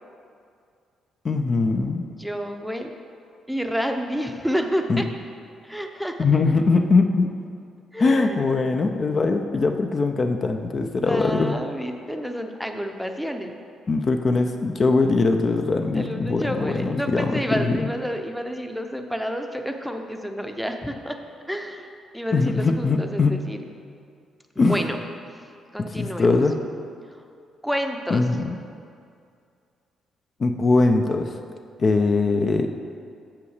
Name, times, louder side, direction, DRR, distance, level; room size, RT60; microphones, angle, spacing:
voice 1, 1.2-2.1 4.9-5.0 6.2-7.3 8.0-11.6 13.9-17.9 22.3-23.3 24.6-24.8 26.0-26.6 28.1-28.5 30.4-31.4 31.8-32.7, left 3 dB, 40° left, 5 dB, 0.5 m, -21 dB
voice 2, 2.2-2.9 3.5-5.1 5.6-6.3 7.9-8.5 11.0-13.5 15.9-21.2 21.5-23.6 24.6-25.0 25.7-26.4 27.1-27.2 27.6-28.3, equal, ahead, 4 dB, 0.7 m, -29 dB
7.0 x 5.7 x 6.5 m, 2.3 s
cardioid pair, 90°, 0 cm